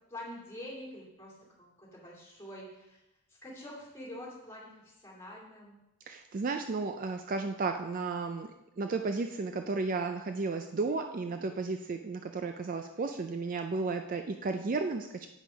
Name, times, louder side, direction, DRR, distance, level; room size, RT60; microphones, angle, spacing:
voice 1, 0.1-1.3 1.6-3.0 3.4-5.8, left 1 dB, 10° left, -4 dB, 2.5 m, -46 dB
voice 2, 6.1-8.5 8.8-15.3, right 3 dB, 40° right, 6 dB, 0.4 m, -33 dB
8.2 x 5.7 x 5.0 m, 0.94 s
head